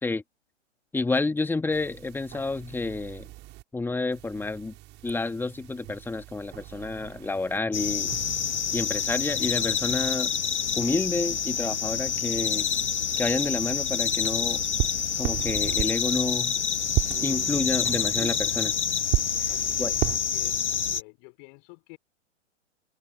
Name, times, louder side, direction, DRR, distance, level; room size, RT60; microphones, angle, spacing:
voice 1, 0.9-3.3 3.7-4.7 5.0-8.1 8.7-10.4 10.8-12.7 13.2-14.6 15.2-16.6 17.2-18.7 19.4-19.5 19.8-19.9, left 3 dB, 5° left, 2.5 m, -29 dB
sound 1, 1.7-3.6 4.1-7.6 8.1-10.1 10.6-16.3 16.8-20.2, right 19 dB, 30° right, 7.3 m, -36 dB
sound 2, 7.7-21.0, left 7 dB, 65° left, 1.4 m, -27 dB
voice 2, 19.5-22.0, left 40 dB or more, 35° left, 5.3 m, -48 dB
figure-of-eight pair, 110°, 36 cm